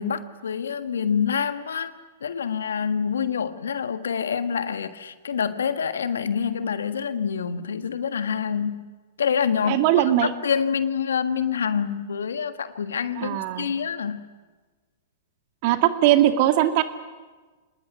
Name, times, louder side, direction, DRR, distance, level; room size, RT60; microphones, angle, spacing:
voice 1, 0.0-1.9 2.2-8.9 9.2-14.3, left 7 dB, 75° left, 10 dB, 1.5 m, -26 dB
voice 2, 9.7-10.3 13.2-13.7 15.6-16.8, right 13 dB, 50° right, 7 dB, 2.3 m, -20 dB
26.5 x 20.0 x 9.5 m, 1.3 s
hypercardioid pair, 110°, 0 cm